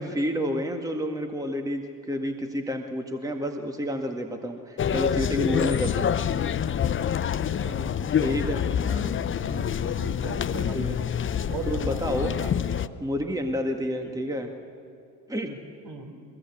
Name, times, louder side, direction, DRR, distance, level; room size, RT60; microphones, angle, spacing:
voice 1, 0.0-6.2 8.2-8.7 10.7-11.0 11.7-12.3 13.0-14.5 15.3-15.6, equal, 5° right, 4 dB, 1.8 m, -29 dB
sound 1, 4.8-12.9, left 8 dB, 25° left, 0.7 m, -26 dB
voice 2, 7.5-8.1 8.8-9.1 9.4-10.8 11.3-12.6 14.0-14.1 15.8-16.1, right 5 dB, 50° right, 3 dB, 4.5 m, -40 dB
22.0 x 21.5 x 8.5 m, 2.5 s
hypercardioid pair, 70°, 49 cm